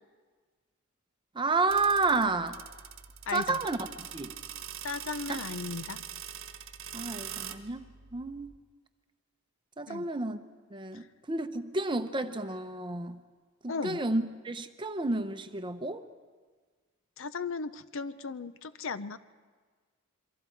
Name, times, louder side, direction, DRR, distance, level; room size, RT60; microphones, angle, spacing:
voice 1, 1.3-2.6 3.3-3.8 4.1-4.3 5.3-5.4 6.9-7.9 8.1-8.5 9.8-10.4 10.7-13.2 13.6-16.0, right 3 dB, 20° right, 8 dB, 0.8 m, -30 dB
sound 1, 1.7-8.6, right 9 dB, 70° right, 1.2 m, -43 dB
voice 2, 3.3-3.6 4.8-6.0 9.9-10.1 13.7-14.0 17.2-19.2, left 4 dB, 60° left, 13 dB, 0.6 m, -36 dB
27.5 x 23.0 x 4.6 m, 1.5 s
head